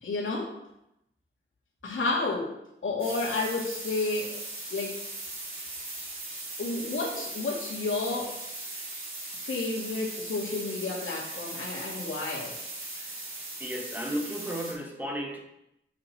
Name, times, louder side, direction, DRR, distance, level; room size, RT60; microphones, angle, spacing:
voice 1, 0.0-0.5 1.8-2.5 2.8-4.4 4.7-5.0 6.6-8.3 9.4-12.5, left 3 dB, 75° left, -3 dB, 2.3 m, -31 dB
sound 1, 3.0-14.7, right 2 dB, 80° right, 2.5 m, -39 dB
voice 2, 12.8-13.2 13.6-15.4, equal, 10° right, 0 dB, 1.0 m, -34 dB
8.0 x 6.5 x 4.5 m, 0.84 s
wide cardioid pair, 155°, 21 cm